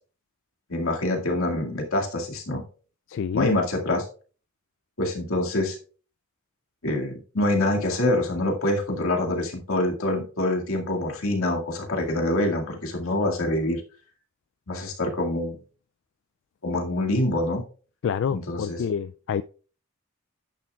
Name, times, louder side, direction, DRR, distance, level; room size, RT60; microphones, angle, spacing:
voice 1, 0.7-2.6 3.3-4.1 5.0-5.8 6.8-13.8 14.7-15.6 16.6-17.6 18.3-18.8, left 1 dB, 90° left, 2.1 m, -25 dB
voice 2, 3.1-3.5 18.0-19.4, left 7 dB, 60° left, 0.3 m, -27 dB
10.5 x 9.6 x 2.4 m
head